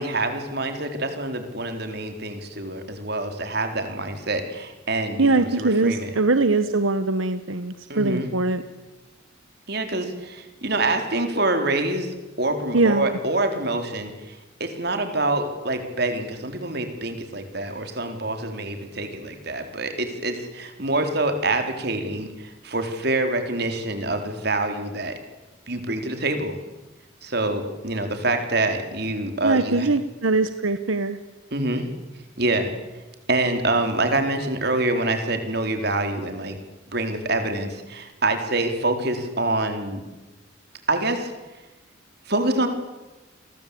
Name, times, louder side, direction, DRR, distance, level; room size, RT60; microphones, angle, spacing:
voice 1, 0.0-6.1 7.9-8.3 9.7-25.1 25.7-26.6 27.2-29.9 31.5-31.9 32.4-32.7 33.3-36.6 36.9-40.0 40.9-41.3 42.3-42.7, right 2 dB, 55° right, 6 dB, 4.3 m, -26 dB
voice 2, 5.2-8.6 12.7-13.1 29.4-31.2, right 3 dB, 85° right, 11 dB, 1.3 m, -22 dB
29.5 x 23.0 x 8.7 m, 1.1 s
head